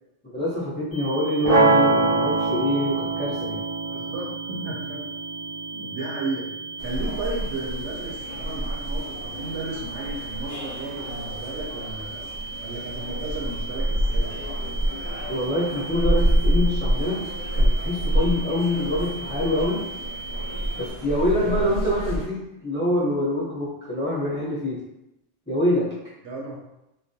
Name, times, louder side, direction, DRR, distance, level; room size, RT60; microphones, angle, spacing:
voice 1, 0.2-3.6 15.3-19.8 20.7-24.8 25.5-25.9, left 1 dB, 10° left, -8 dB, 0.6 m, -25 dB
sound 1, 0.9-20.9, right 4 dB, 45° left, 0.8 m, -38 dB
sound 2, 1.4-7.5, right 3 dB, 50° right, 0.5 m, -24 dB
voice 2, 3.9-5.0 5.7-12.2 12.6-14.5 21.3-21.7 26.2-26.6, right 2 dB, 70° right, -3 dB, 0.8 m, -34 dB
sound 3, 6.8-22.3, equal, 75° left, 0.9 m, -27 dB
2.3 x 2.2 x 2.6 m, 0.88 s
omnidirectional pair, 1.3 m